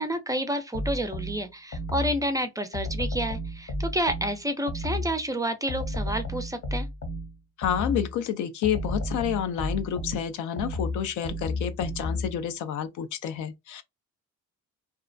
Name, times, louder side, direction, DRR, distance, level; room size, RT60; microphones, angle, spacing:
voice 1, 0.0-6.9, right 1 dB, 10° right, 0.4 m, -29 dB
sound 1, 0.7-2.3 2.7-5.2 5.7-8.2 8.6-12.4, left 1 dB, 45° left, 0.7 m, -32 dB
voice 2, 7.6-13.8, left 9 dB, 80° left, 0.5 m, -29 dB
2.4 x 2.1 x 2.5 m
cardioid pair, 90°, 30 cm